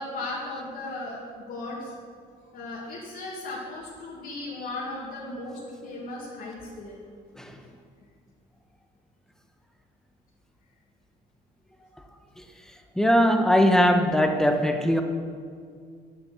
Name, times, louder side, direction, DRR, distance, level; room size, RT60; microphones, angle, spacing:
voice 1, 0.0-1.9 2.5-7.0, left 2 dB, 60° left, -5 dB, 2.1 m, -36 dB
voice 2, 13.0-15.0, equal, 5° left, 5 dB, 1.0 m, -20 dB
9.1 x 7.6 x 7.0 m, 2.1 s
cardioid pair, 110°, 17 cm